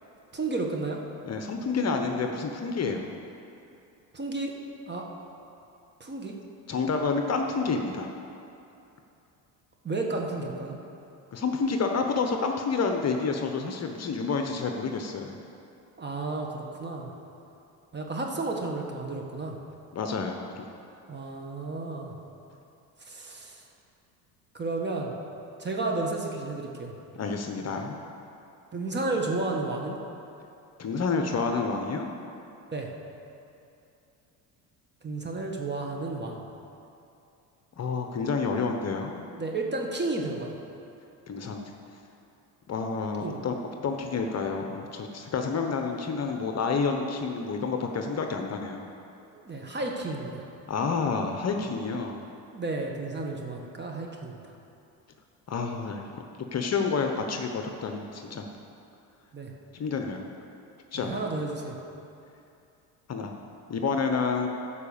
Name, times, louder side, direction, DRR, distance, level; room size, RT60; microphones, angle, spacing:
voice 1, 0.3-1.0 4.1-4.5 4.9-5.1 6.0-6.4 9.8-10.8 16.0-17.1 17.9-19.6 21.1-22.2 23.0-23.6 24.5-25.1 25.6-26.9 28.7-30.0 32.7-32.9 35.0-36.4 39.3-40.6 43.2-43.4 49.3-50.5 52.5-54.5 59.3-59.5 60.9-61.8, right 2 dB, 25° right, 1 dB, 1.5 m, -32 dB
voice 2, 1.3-3.1 6.7-8.1 11.3-15.4 19.9-20.7 27.1-28.0 30.8-32.1 37.8-39.1 41.3-41.7 42.7-43.6 43.8-48.9 50.7-52.2 55.5-56.2 56.5-58.5 59.8-60.2 60.9-61.3 63.1-63.3 63.7-64.5, left 4 dB, 35° left, 4 dB, 1.0 m, -29 dB
12.0 x 5.1 x 7.1 m, 2.7 s
supercardioid pair, 90°, 42 cm